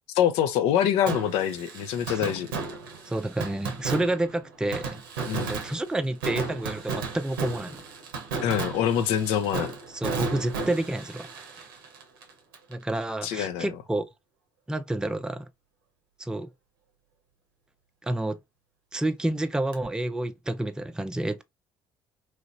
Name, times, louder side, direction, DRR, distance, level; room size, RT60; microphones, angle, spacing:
voice 1, 0.1-2.5 5.3-5.5 8.4-9.7 13.2-13.7, left 9 dB, 70° left, 0.5 m, -25 dB
Fireworks, 1.1-12.7 13.0-13.1 19.7-19.8, right 4 dB, 90° right, 0.7 m, -34 dB
voice 2, 3.1-5.0 5.5-7.8 9.9-11.7 12.7-14.0 14.7-15.5 16.2-16.5 18.0-18.4 18.9-21.4, right 1 dB, 5° right, 0.5 m, -29 dB
3.1 x 2.9 x 2.5 m
hypercardioid pair, 60°, 11 cm